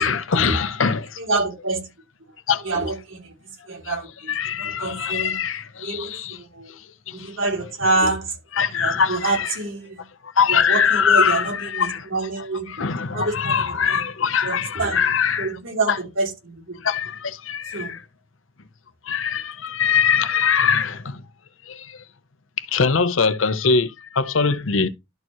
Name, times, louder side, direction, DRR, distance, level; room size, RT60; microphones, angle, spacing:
voice 1, 0.0-1.2 2.5-2.6 3.9-4.0 4.3-6.4 7.1-7.3 8.5-9.6 10.4-12.0 12.4-15.6 15.9-16.0 16.8-18.0 19.1-21.2 21.7-21.9 22.6-24.9, left 6 dB, 85° left, 0.8 m, -22 dB
voice 2, 1.2-1.9 2.6-3.3 3.7-4.1 4.6-5.4 5.8-6.7 7.1-8.3 8.7-10.0 10.5-12.7 13.1-14.0 14.4-15.0 15.4-16.8 17.7-17.9, right 2 dB, 85° right, 3.0 m, -26 dB
12.0 x 4.5 x 3.0 m
head